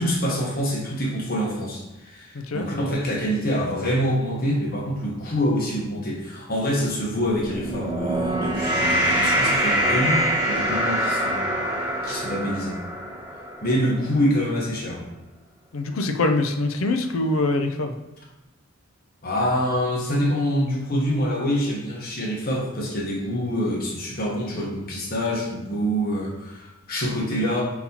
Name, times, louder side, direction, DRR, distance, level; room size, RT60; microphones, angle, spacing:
voice 1, 0.0-11.5 12.0-12.8 13.6-15.0 19.2-27.6, equal, 45° left, -3 dB, 1.1 m, -26 dB
voice 2, 2.3-2.7 15.7-18.0, left 2 dB, 70° left, 6 dB, 0.5 m, -24 dB
sound 1, 7.3-13.9, right 1 dB, 25° right, 1.2 m, -24 dB
4.2 x 4.0 x 2.8 m, 1.0 s
head